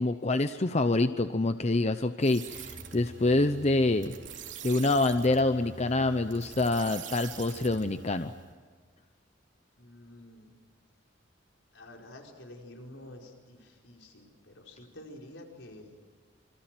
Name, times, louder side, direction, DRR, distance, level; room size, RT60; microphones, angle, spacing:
voice 1, 0.0-4.1 4.6-8.3, left 2 dB, 35° left, 9 dB, 0.8 m, -26 dB
sound 1, 2.2-8.6, right 6 dB, 75° right, 3.5 m, -45 dB
voice 2, 9.7-10.6 11.7-16.0, left 1 dB, 75° left, 1 dB, 5.0 m, -49 dB
27.5 x 26.0 x 7.7 m, 1.6 s
head